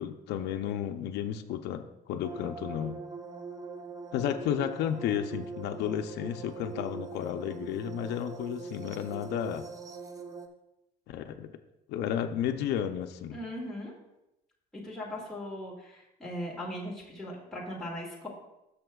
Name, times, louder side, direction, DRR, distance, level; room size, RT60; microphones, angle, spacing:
voice 1, 0.0-3.0 4.1-9.7 11.1-11.5 11.9-13.4, left 9 dB, 80° left, 6 dB, 0.6 m, -32 dB
sound 1, 2.2-10.5, right 4 dB, 20° right, 0.7 m, -42 dB
voice 2, 13.3-13.9 14.7-18.3, left 1 dB, 5° left, -5 dB, 2.1 m, -39 dB
13.0 x 6.6 x 2.3 m, 0.88 s
cardioid pair, 110°, 17 cm